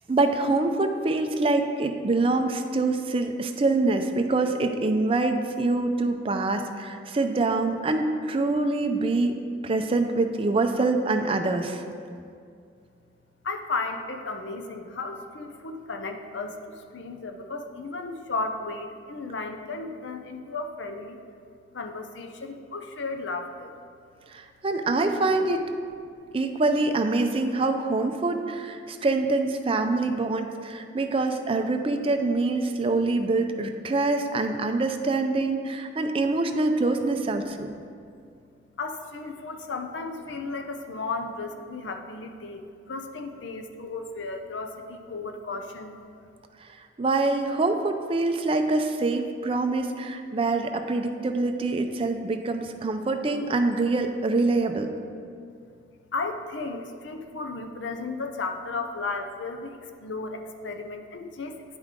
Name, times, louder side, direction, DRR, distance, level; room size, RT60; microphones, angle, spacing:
voice 1, 0.1-9.4 9.6-11.8 24.3-25.7 26.3-37.7 46.6-46.7 47.0-54.9, right 3 dB, 30° right, 6 dB, 0.4 m, -25 dB
voice 2, 13.4-21.2 21.7-23.7 38.8-46.0 56.1-61.6, left 3 dB, 75° left, 5 dB, 0.6 m, -34 dB
9.8 x 5.0 x 3.7 m, 2.3 s
head